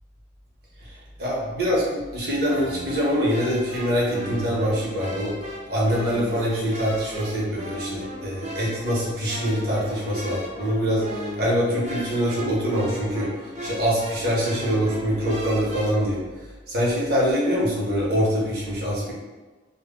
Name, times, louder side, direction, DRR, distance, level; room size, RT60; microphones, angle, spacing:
voice 1, 0.8-5.3 5.7-16.2 16.7-19.1, equal, 55° right, -5 dB, 0.8 m, -24 dB
sound 1, 2.4-16.1, equal, 40° right, 0.4 m, -36 dB
2.1 x 2.1 x 3.5 m, 1.3 s
head